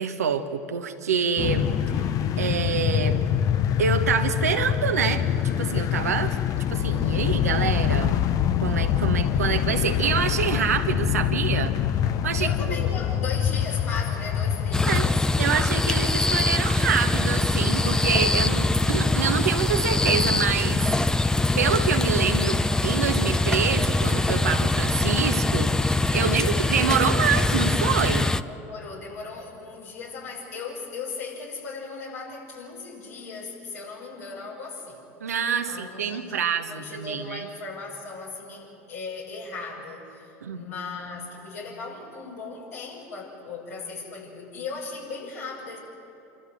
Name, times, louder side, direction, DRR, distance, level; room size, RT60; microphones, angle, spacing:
voice 1, 0.0-2.1 2.4-3.2 3.8-6.4 6.7-8.3 8.6-11.7 12.2-12.8 14.9-15.1 15.4-21.2 21.6-28.3 35.2-37.5 40.4-40.6, right 7 dB, 90° right, 6 dB, 1.2 m, -26 dB
sound 1, 1.4-15.1, left 9 dB, 45° left, 0.9 m, -25 dB
voice 2, 12.4-15.2 26.1-26.6 28.4-35.0 35.6-45.8, left 4 dB, 80° left, -3 dB, 5.8 m, -37 dB
sound 2, 14.7-28.4, left 2 dB, 10° left, 0.6 m, -23 dB
27.0 x 13.5 x 7.8 m, 2.8 s
hypercardioid pair, 80°, 8 cm